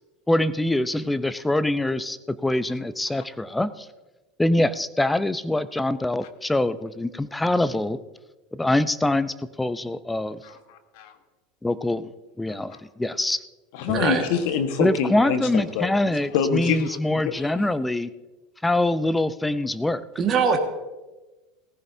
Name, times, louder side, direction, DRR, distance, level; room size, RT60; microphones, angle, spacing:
voice 1, 0.3-3.9 4.4-8.0 8.5-10.4 11.6-12.1 12.4-13.4 14.8-18.1 18.6-20.0, left 1 dB, 10° left, 15 dB, 0.7 m, -24 dB
voice 2, 10.4-11.1 12.7-12.8 13.7-15.9 16.3-17.6, left 7 dB, 65° left, 8 dB, 1.4 m, -26 dB
voice 3, 13.9-14.2 16.0-16.1 20.2-20.6, right 6 dB, 35° right, 3 dB, 1.7 m, -22 dB
18.5 x 15.0 x 2.7 m, 1.1 s
hypercardioid pair, 80°, 0 cm